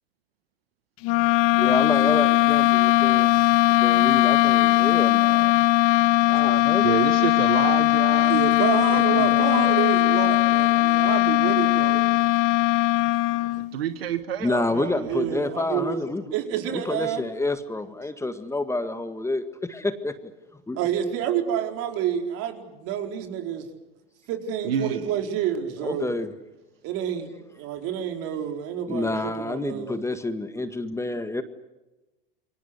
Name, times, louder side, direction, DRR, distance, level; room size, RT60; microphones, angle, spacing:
sound 1, 1.0-13.7, left 17 dB, 50° left, 1.3 m, -19 dB
voice 1, 1.6-3.4 3.8-5.5 6.3-6.9 14.4-16.2 16.7-20.3 20.7-20.8 25.8-26.3 28.9-31.4, left 2 dB, 10° left, 10 dB, 1.8 m, -28 dB
voice 2, 6.8-8.3 8.9-9.7 13.3-15.3 15.7-15.8 24.6-25.1, right 9 dB, 80° right, 10 dB, 1.6 m, -29 dB
voice 3, 8.2-12.0 15.0-16.0 16.3-17.2 20.8-23.7 24.3-26.1 26.8-30.0, right 9 dB, 50° right, 4 dB, 4.5 m, -28 dB
28.5 x 23.5 x 8.2 m, 1.1 s
hypercardioid pair, 95°, 29 cm